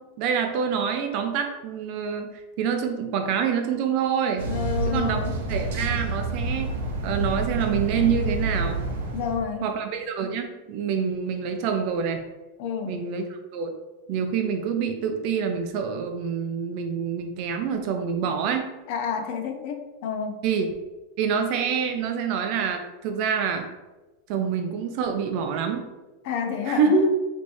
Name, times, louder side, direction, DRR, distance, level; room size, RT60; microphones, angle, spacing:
voice 1, 0.2-4.5 4.9-5.2 5.5-6.7 7.0-8.8 9.6-12.2 12.8-13.2 13.5-13.7 14.1-18.7 20.4-20.7 21.2-23.7 24.3-25.9 26.7-27.1, right 6 dB, 40° right, 5 dB, 0.5 m, -26 dB
voice 2, 4.4-5.4 9.1-9.7 12.6-13.0 18.9-20.4 26.2-27.1, left 7 dB, 45° left, 6 dB, 0.5 m, -29 dB
sound 1, 4.4-9.4, right 2 dB, 85° right, 0.8 m, -28 dB
3.3 x 3.1 x 4.2 m, 1.1 s
supercardioid pair, 170°, 0 cm